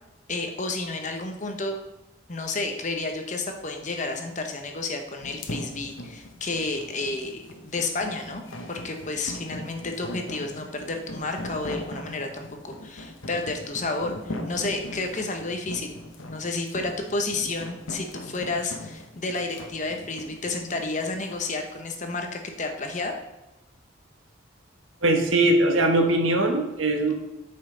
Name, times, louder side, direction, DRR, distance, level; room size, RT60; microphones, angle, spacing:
voice 1, 0.3-1.8 2.3-23.2, left 3 dB, 40° left, 4 dB, 1.0 m, -31 dB
sound 1, 5.2-21.5, left 1 dB, 85° left, 1.2 m, -39 dB
voice 2, 25.0-27.1, right 2 dB, 90° right, 3 dB, 1.4 m, -21 dB
13.0 x 5.6 x 3.9 m, 0.95 s
head